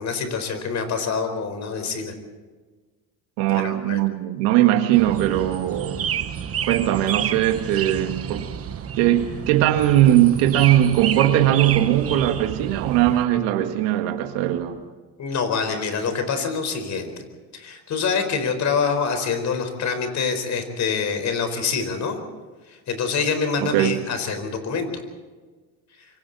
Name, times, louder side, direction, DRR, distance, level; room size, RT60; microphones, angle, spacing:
voice 1, 0.0-2.1 3.5-4.1 15.2-17.1 17.5-22.2 22.9-24.9, left 5 dB, 40° left, 7 dB, 4.5 m, -25 dB
voice 2, 3.4-6.0 6.6-8.5 9.0-14.8 23.6-24.0, right 13 dB, 90° right, 6 dB, 1.9 m, -20 dB
sound 1, 4.9-13.3, right 9 dB, 35° right, 1.2 m, -30 dB
27.0 x 24.0 x 4.2 m, 1.4 s
cardioid pair, 140°, 42 cm